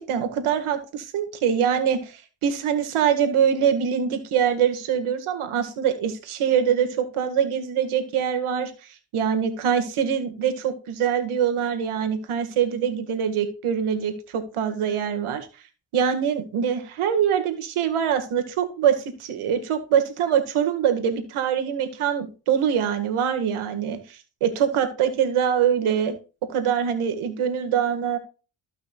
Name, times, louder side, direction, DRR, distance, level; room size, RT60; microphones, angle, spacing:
voice 1, 0.0-8.7 9.1-15.5 15.9-26.2 26.5-28.2, right 8 dB, 80° right, 7 dB, 1.9 m, -24 dB
15.5 x 5.8 x 2.4 m, 0.33 s
supercardioid pair, 65°, 49 cm